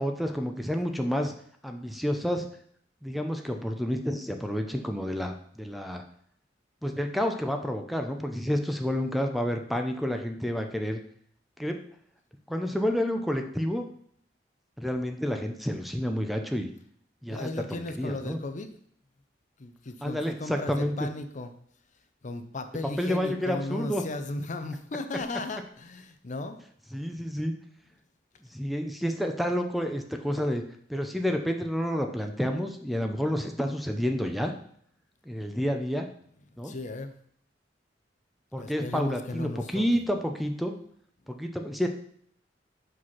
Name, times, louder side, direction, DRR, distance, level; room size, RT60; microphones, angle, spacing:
voice 1, 0.0-1.3 1.6-2.5 3.0-6.0 6.8-11.0 11.6-11.8 12.5-13.8 14.8-16.7 17.2-18.4 20.0-21.1 23.0-24.0 26.9-27.5 28.5-30.6 30.9-34.5 35.2-36.1 36.6-36.7 38.5-40.7 41.3-41.9, equal, ahead, 5 dB, 0.6 m, -29 dB
voice 2, 17.3-18.7 19.6-21.5 22.2-26.6 36.6-37.1 38.6-39.9, left 2 dB, 45° left, 8 dB, 0.6 m, -36 dB
6.2 x 5.1 x 5.6 m, 0.63 s
head